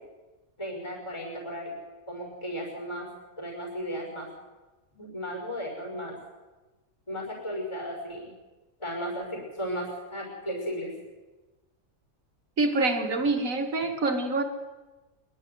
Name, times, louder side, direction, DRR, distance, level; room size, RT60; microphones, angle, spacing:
voice 1, 0.6-1.7 2.1-3.1 3.4-4.3 4.9-6.2 7.1-8.3 8.8-10.9, equal, 20° left, -1 dB, 5.9 m, -35 dB
voice 2, 12.6-14.4, right 3 dB, 70° right, 5 dB, 2.4 m, -26 dB
25.5 x 11.5 x 9.5 m, 1.2 s
omnidirectional pair, 1.5 m